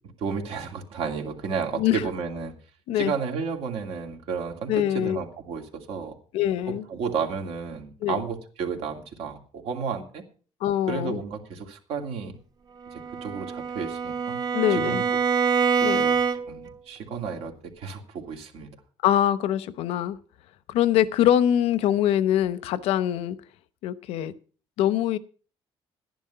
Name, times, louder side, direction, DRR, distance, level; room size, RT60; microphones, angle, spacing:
voice 1, 0.2-2.5 2.9-6.1 6.9-10.2 10.9-12.4 12.9-14.4 14.7-15.2 15.8-16.2 16.5-18.7, right 6 dB, 75° right, 3 dB, 2.6 m, -32 dB
voice 2, 4.7-5.2 6.3-6.8 8.0-8.2 10.6-11.2 14.5-15.0 15.8-16.0 19.0-20.2 20.7-23.4 23.8-24.3 24.8-25.2, left 11 dB, 80° left, 16 dB, 0.9 m, -23 dB
Bowed string instrument, 12.9-16.7, right 6 dB, 40° right, 1.1 m, -25 dB
11.5 x 10.5 x 5.6 m, 0.39 s
cardioid pair, 115°, 10 cm